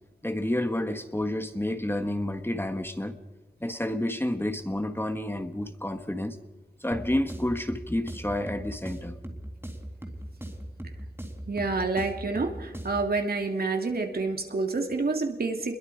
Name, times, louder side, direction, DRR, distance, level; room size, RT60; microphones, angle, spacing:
voice 1, 0.2-3.2 3.6-6.4 6.8-9.2, left 1 dB, 15° left, 8 dB, 1.5 m, -30 dB
sound 1, 6.9-13.1, right 1 dB, 15° right, 3.5 m, -40 dB
voice 2, 11.5-15.8, right 3 dB, 65° right, 3 dB, 3.0 m, -28 dB
27.0 x 22.0 x 5.1 m, 1.1 s
wide cardioid pair, 85°, 17 cm